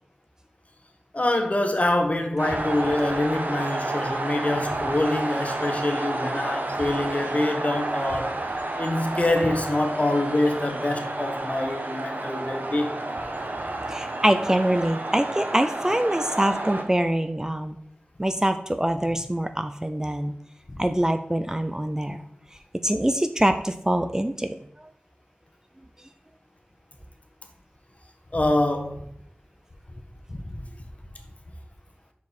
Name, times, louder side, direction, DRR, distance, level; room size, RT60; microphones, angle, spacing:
voice 1, 1.1-8.3 8.8-12.9 20.7-20.8 28.3-29.0 30.3-30.6, left 1 dB, 40° left, 5 dB, 1.2 m, -25 dB
sound 1, 2.4-16.8, right 2 dB, 60° right, 1.0 m, -30 dB
voice 2, 13.9-17.8 18.2-20.3 20.8-22.2 22.8-24.6, right 1 dB, 15° right, 9 dB, 0.5 m, -24 dB
7.0 x 4.8 x 4.2 m, 0.68 s
wide cardioid pair, 60°, 3 cm